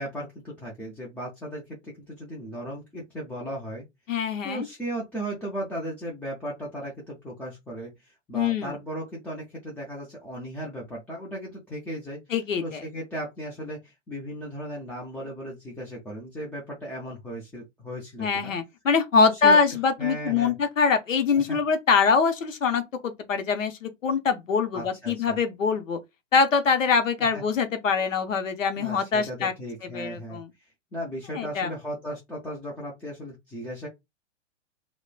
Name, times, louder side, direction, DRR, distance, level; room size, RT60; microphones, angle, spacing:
voice 1, 0.0-3.8 4.4-12.2 12.6-18.5 19.2-19.6 20.0-20.5 21.5-21.6 24.7-25.4 27.3-27.4 28.8-30.4 30.9-33.9, equal, 5° left, 0.4 m, -36 dB
voice 2, 4.1-4.7 8.3-8.7 12.3-12.8 18.2-26.0 26.3-29.5 29.9-30.5 31.3-31.7, left 5 dB, 85° left, 0.7 m, -24 dB
3.0 x 2.1 x 2.3 m
hypercardioid pair, 110°, 38 cm